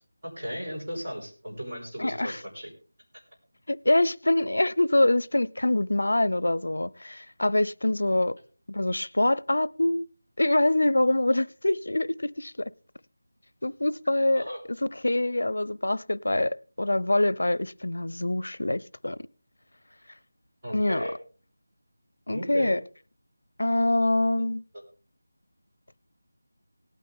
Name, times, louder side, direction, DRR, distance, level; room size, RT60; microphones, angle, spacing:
voice 1, 0.4-2.7 14.3-14.6 20.6-21.2 22.3-22.8, equal, 25° right, 5.0 m, -35 dB
voice 2, 2.0-2.4 3.7-8.4 8.7-10.1 10.4-12.7 13.6-14.5 14.8-19.3 20.7-21.0 22.3-22.8 23.6-24.6, left 1 dB, 90° left, 0.5 m, -25 dB
18.5 x 9.2 x 3.6 m
figure-of-eight pair, 180°, 0 cm